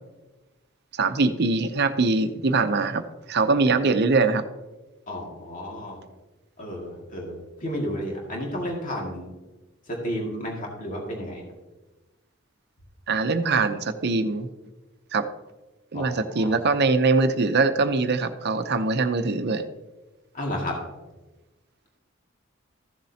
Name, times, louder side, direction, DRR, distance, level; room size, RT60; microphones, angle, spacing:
voice 1, 0.9-4.4 13.1-14.5 15.1-15.2 15.9-19.6, right 3 dB, 55° right, 8 dB, 0.7 m, -22 dB
voice 2, 5.1-6.0 6.6-9.2 10.0-11.4 15.9-16.5 20.3-20.8, equal, 40° left, -2 dB, 2.1 m, -32 dB
15.0 x 7.4 x 2.8 m, 1.1 s
head